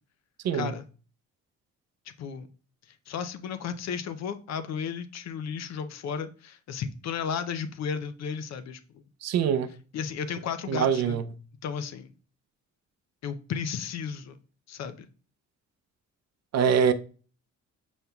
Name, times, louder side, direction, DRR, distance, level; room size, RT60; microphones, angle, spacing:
voice 1, 0.5-0.9 2.2-2.5 3.1-9.0 9.9-11.2 11.6-12.1 13.2-14.4 14.7-15.1, left 7 dB, 60° left, 0.6 m, -34 dB
voice 2, 9.2-9.7 10.7-11.3 16.5-16.9, right 7 dB, 60° right, 0.5 m, -23 dB
5.3 x 4.3 x 2.3 m
cardioid pair, 90°, 30 cm